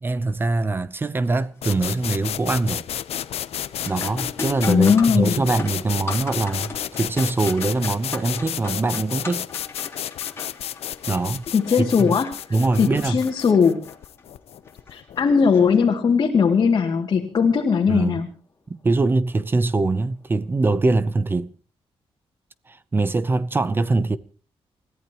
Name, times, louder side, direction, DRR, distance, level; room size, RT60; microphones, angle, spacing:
voice 1, 0.0-2.8 3.9-9.5 11.1-11.5 11.8-12.1 12.5-13.2 17.9-18.2 18.7-21.5 22.7-24.2, right 3 dB, 20° right, 0.7 m, -23 dB
sound 1, 1.2-1.6 2.0-2.5 2.8-16.3 18.8-18.9 19.8-20.0, left 4 dB, 25° left, 3.3 m, -39 dB
sound 2, 1.6-15.3, left 10 dB, 85° left, 0.9 m, -32 dB
voice 2, 4.7-5.4 11.5-12.4 12.8-13.9 14.9-18.3, left 6 dB, 45° left, 2.6 m, -19 dB
29.0 x 14.5 x 3.0 m
wide cardioid pair, 175°, 10 cm